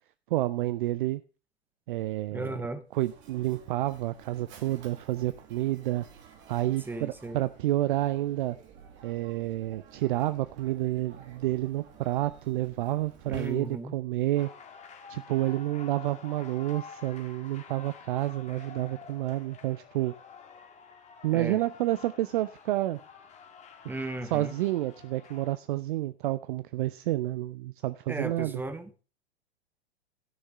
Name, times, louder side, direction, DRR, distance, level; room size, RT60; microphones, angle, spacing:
voice 1, 0.3-1.2 1.9-2.5 2.9-6.1 6.5-8.6 9.0-14.5 15.1-20.1 21.2-23.0 24.3-28.6, right 15 dB, 50° right, 0.6 m, -29 dB
voice 2, 2.3-2.8 6.9-7.4 13.3-13.9 21.3-21.6 23.9-24.5 28.1-29.0, right 2 dB, 5° right, 0.9 m, -36 dB
Mechanisms, 2.9-14.0, right 7 dB, 35° right, 2.1 m, -52 dB
sound 1, 14.3-25.6, left 6 dB, 20° left, 1.6 m, -50 dB
12.5 x 6.5 x 5.2 m
figure-of-eight pair, 100°, 32 cm